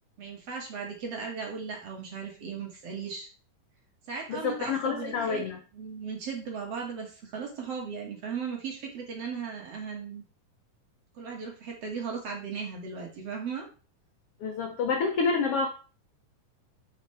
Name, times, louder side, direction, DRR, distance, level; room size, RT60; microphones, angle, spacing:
voice 1, 0.2-3.3 4.1-10.2 11.1-13.7, right 6 dB, 50° right, 0 dB, 2.4 m, -37 dB
voice 2, 4.3-5.6 14.4-15.7, left 5 dB, 80° left, 3 dB, 1.3 m, -28 dB
9.3 x 5.7 x 3.3 m, 0.35 s
omnidirectional pair, 3.9 m